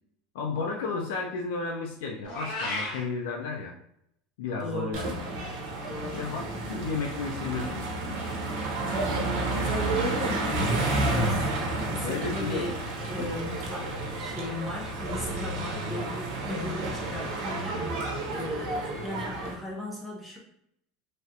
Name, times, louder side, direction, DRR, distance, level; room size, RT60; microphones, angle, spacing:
voice 1, 0.3-3.7 4.4-5.1 6.1-7.8 12.0-12.7, left 4 dB, 80° left, 2 dB, 0.4 m, -32 dB
Meow, 2.2-3.0, left 2 dB, 45° left, 1.0 m, -33 dB
voice 2, 4.6-5.1 5.9-6.3 8.2-11.5 11.8-12.8 13.1-20.4, left 1 dB, 10° left, -3 dB, 0.5 m, -37 dB
sound 1, 4.9-19.5, right 2 dB, 60° right, 0.7 m, -31 dB
3.3 x 2.4 x 2.7 m, 0.75 s
supercardioid pair, 170°, 0 cm